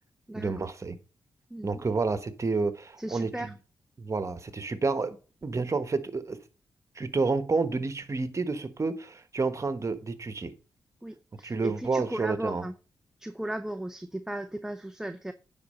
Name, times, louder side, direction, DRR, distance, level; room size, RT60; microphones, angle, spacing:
voice 1, 0.3-1.0 1.6-3.5 4.0-5.2 5.4-6.4 7.0-10.5 11.3-12.6, right 4 dB, 40° right, 1.3 m, -29 dB
voice 2, 1.5-1.8 3.0-3.5 11.0-12.7 13.2-15.3, right 1 dB, 5° right, 0.7 m, -36 dB
9.7 x 4.1 x 6.4 m
supercardioid pair, 50°, 8 cm